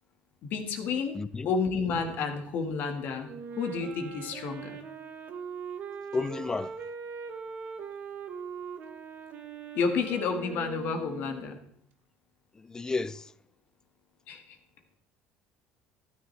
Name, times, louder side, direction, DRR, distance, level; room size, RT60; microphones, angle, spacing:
voice 1, 0.4-1.2 1.5-3.3 3.6-4.8 9.8-11.6 14.3-14.6, left 5 dB, 60° left, 1.7 m, -30 dB
voice 2, 1.2-1.5 6.1-6.7 12.7-13.2, left 3 dB, 20° left, 0.4 m, -31 dB
Wind instrument woodwind instrument, 3.2-11.6, right 6 dB, 50° right, 1.1 m, -41 dB
12.5 x 9.5 x 3.3 m
cardioid pair, 110°, 4 cm